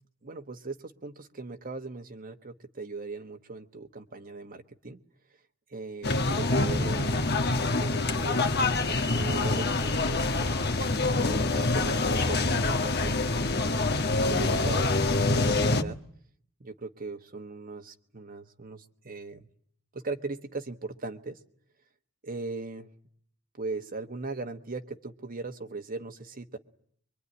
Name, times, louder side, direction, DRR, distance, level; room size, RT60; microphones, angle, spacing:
voice 1, 0.2-5.0 5.7-7.3 7.7-8.5 9.1-10.9 11.2-13.7 14.3-14.9 15.3-16.0 16.6-19.5 19.9-21.4 22.2-22.9 23.6-26.6, right 3 dB, 45° right, 6 dB, 1.3 m, -39 dB
sound 1, 6.0-15.8, left 2 dB, 55° left, 1.5 m, -26 dB
24.0 x 24.0 x 9.8 m, 0.63 s
head